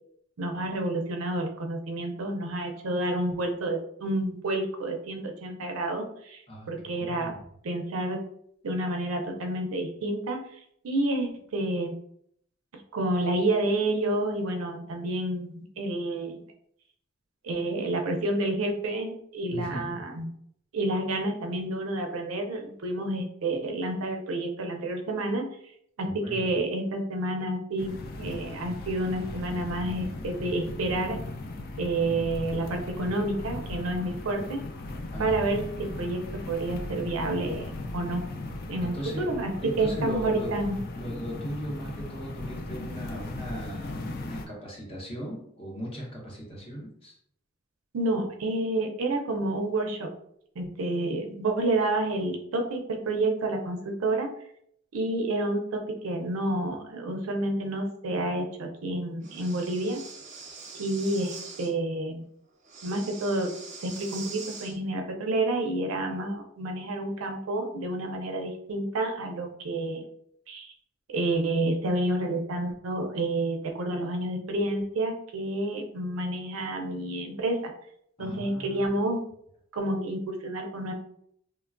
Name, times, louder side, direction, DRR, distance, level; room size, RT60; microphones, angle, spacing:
voice 1, 0.4-6.4 6.7-7.3 7.6-8.2 8.6-10.4 10.8-11.9 12.9-16.4 17.4-20.3 20.7-25.5 26.0-31.2 31.8-34.7 35.2-36.2 36.5-38.2 38.7-40.8 47.9-50.1 50.6-54.3 54.9-60.0 60.7-62.2 62.8-63.5 63.8-70.0 70.5-70.7 71.1-77.7 78.2-79.2 79.7-80.9, right 2 dB, 80° right, 3 dB, 0.5 m, -29 dB
voice 2, 6.5-7.4 19.5-19.9 26.1-26.5 35.1-35.4 38.8-39.3 39.6-40.5 41.0-47.2 78.2-78.9, equal, 25° left, -2 dB, 0.8 m, -38 dB
sound 1, 27.8-44.5, left 2 dB, 45° left, 0.3 m, -38 dB
Breathing, 59.2-61.7 62.6-64.8, right 4 dB, 35° right, 0.6 m, -43 dB
3.1 x 2.2 x 2.4 m, 0.68 s
head